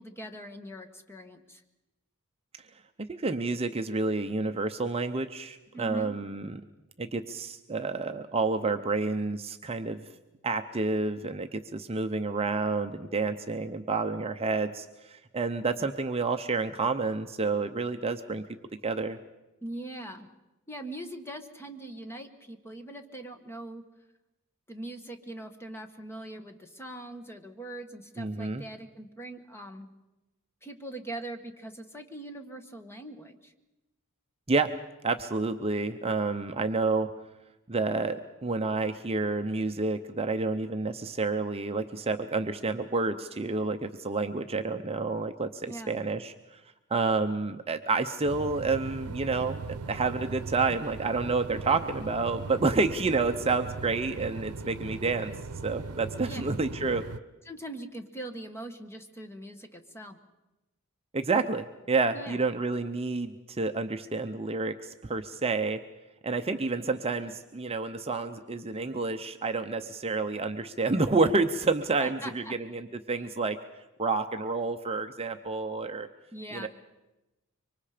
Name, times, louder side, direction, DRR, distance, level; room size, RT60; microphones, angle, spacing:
voice 1, 0.0-1.6 5.7-6.1 19.6-20.3 20.7-23.8 24.7-29.9 30.6-33.5 45.6-46.0 56.3-56.5 57.4-60.2 62.1-62.4 72.0-72.5 76.3-76.7, right 1 dB, 10° left, 6 dB, 1.4 m, -41 dB
voice 2, 3.0-6.6 7.0-10.0 10.4-18.4 18.8-19.2 28.2-28.6 34.5-34.7 35.0-37.1 37.7-46.6 46.9-49.6 49.9-55.3 55.6-57.0 61.1-65.8 66.2-73.6 74.0-76.1 76.5-76.7, right 3 dB, 25° right, 7 dB, 0.7 m, -29 dB
sound 1, 48.2-57.2, right 4 dB, 90° right, 0.7 m, -39 dB
25.0 x 24.5 x 5.0 m, 1.0 s
head